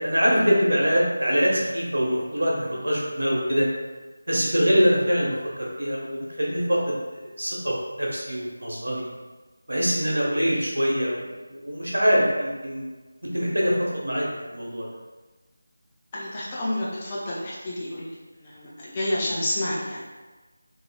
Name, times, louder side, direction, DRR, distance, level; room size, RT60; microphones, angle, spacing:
voice 1, 0.0-3.7 4.3-9.1 9.7-12.8 13.2-14.9, equal, 75° right, -4 dB, 1.0 m, -24 dB
voice 2, 16.1-18.1 18.4-20.1, left 1 dB, 20° left, -6 dB, 0.6 m, -29 dB
3.6 x 3.1 x 2.2 m, 1.3 s
figure-of-eight pair, 165°, 0 cm